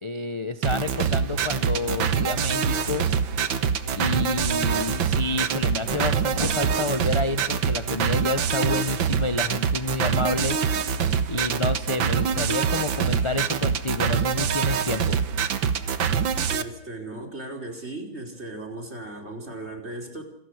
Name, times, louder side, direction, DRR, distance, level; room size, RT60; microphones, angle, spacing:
voice 1, 0.0-3.1 4.0-10.6 11.3-15.2, left 3 dB, 20° left, 11 dB, 0.8 m, -29 dB
sound 1, 0.6-16.6, right 7 dB, 90° right, 2.1 m, -25 dB
sound 2, 2.7-9.0, right 1 dB, 15° right, 2.4 m, -41 dB
voice 2, 16.5-20.2, right 2 dB, 35° right, 3 dB, 5.3 m, -37 dB
28.0 x 26.0 x 6.6 m, 0.74 s
omnidirectional pair, 2.1 m